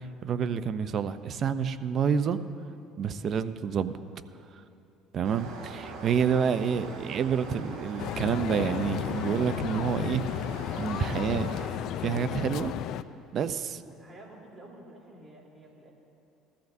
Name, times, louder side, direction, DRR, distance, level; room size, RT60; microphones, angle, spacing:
voice 1, 0.0-2.4 3.0-3.9 4.5-4.6 5.1-10.2 10.8-11.5 12.0-12.7 13.3-13.8, right 7 dB, 45° right, 12 dB, 0.6 m, -28 dB
sound 1, 5.2-11.7, right 3 dB, 65° right, 2.8 m, -42 dB
sound 2, 8.0-13.0, left 11 dB, 60° left, 0.4 m, -33 dB
voice 2, 13.8-15.9, right 1 dB, 20° right, -3 dB, 3.4 m, -50 dB
21.0 x 14.0 x 2.7 m, 2.9 s
supercardioid pair, 105°, 0 cm